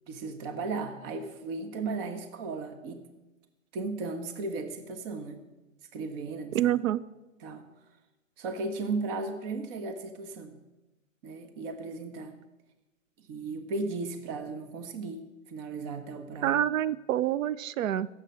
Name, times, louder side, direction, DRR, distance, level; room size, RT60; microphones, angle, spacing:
voice 1, 0.1-3.0 3.7-5.4 5.9-6.6 7.4-7.7 8.4-10.6 11.2-12.4 13.3-15.2 15.5-16.6, right 3 dB, 45° right, 8 dB, 1.3 m, -35 dB
voice 2, 6.5-7.0 16.4-18.1, right 12 dB, 80° right, 18 dB, 0.6 m, -27 dB
16.5 x 7.5 x 5.6 m, 1.1 s
hypercardioid pair, 125°, 39 cm